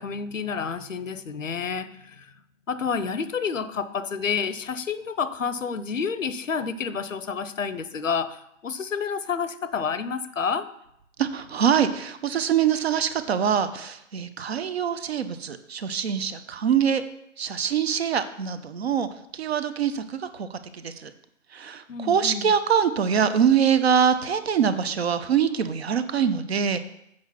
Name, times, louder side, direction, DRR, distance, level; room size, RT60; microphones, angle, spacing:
voice 1, 0.0-2.3 2.7-10.7 21.9-22.5, left 6 dB, 85° left, 14 dB, 0.7 m, -29 dB
voice 2, 11.2-17.0 17.4-21.1 21.5-26.8, right 8 dB, 55° right, 12 dB, 0.8 m, -24 dB
7.9 x 4.8 x 5.6 m, 0.77 s
figure-of-eight pair, 135°, 38 cm